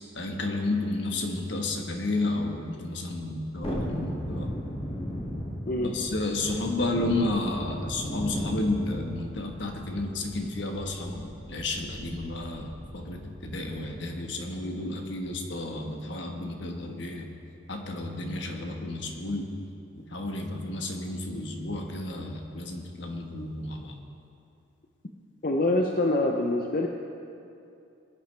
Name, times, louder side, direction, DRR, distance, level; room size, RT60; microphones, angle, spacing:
voice 1, 0.1-4.5 5.8-17.3 17.7-19.5 19.9-23.9, left 2 dB, 70° left, 2 dB, 1.4 m, -32 dB
Thunderstorm, 3.6-13.9 14.2-14.3, equal, 30° left, 2.1 m, -36 dB
voice 2, 25.4-26.9, left 2 dB, 45° left, 1 dB, 0.7 m, -25 dB
20.5 x 10.5 x 3.4 m, 2.6 s
head